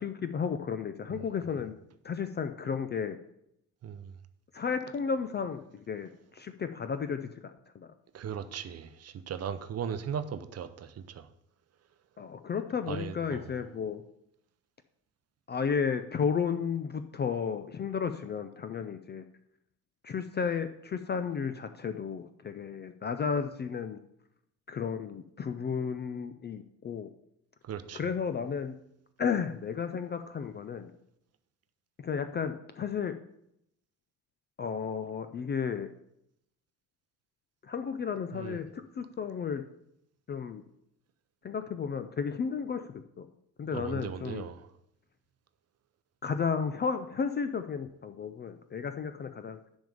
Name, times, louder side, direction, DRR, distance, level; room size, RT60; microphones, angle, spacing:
voice 1, 0.0-1.7 2.0-3.2 4.5-7.5 7.8-7.9 12.2-14.0 15.5-19.2 20.0-24.0 24.7-27.1 27.9-28.7 29.2-30.9 32.0-33.1 34.6-35.9 37.6-39.6 40.3-40.6 41.4-43.3 43.6-44.4 46.2-49.6, left 6 dB, 25° left, 0.4 m, -33 dB
voice 2, 8.1-11.2 12.9-13.5 27.7-28.0 38.3-38.6 43.7-44.6, right 8 dB, 30° right, 0.7 m, -37 dB
10.0 x 3.5 x 6.9 m
figure-of-eight pair, 55°, 48 cm